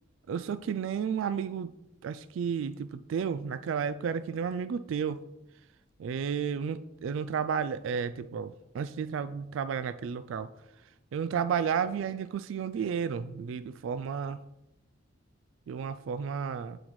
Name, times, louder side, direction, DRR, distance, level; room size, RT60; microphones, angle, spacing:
voice 1, 0.3-1.7 2.0-5.2 6.0-10.5 11.1-14.4 15.7-16.8, right 7 dB, 75° right, 13 dB, 0.3 m, -32 dB
8.9 x 7.7 x 3.1 m, 0.93 s
head